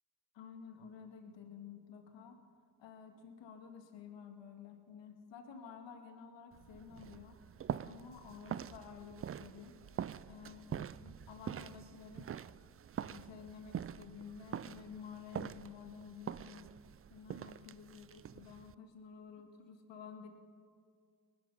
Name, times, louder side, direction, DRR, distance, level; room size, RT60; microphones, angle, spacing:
voice 1, 0.3-2.4 2.8-7.4 7.8-9.7 10.3-12.4 13.1-16.8 17.1-20.3, left 6 dB, 70° left, 5 dB, 2.1 m, -52 dB
sound 1, 6.5-18.7, right 9 dB, 30° right, 0.5 m, -45 dB
19.0 x 12.0 x 5.6 m, 2.2 s
hypercardioid pair, 50°, 46 cm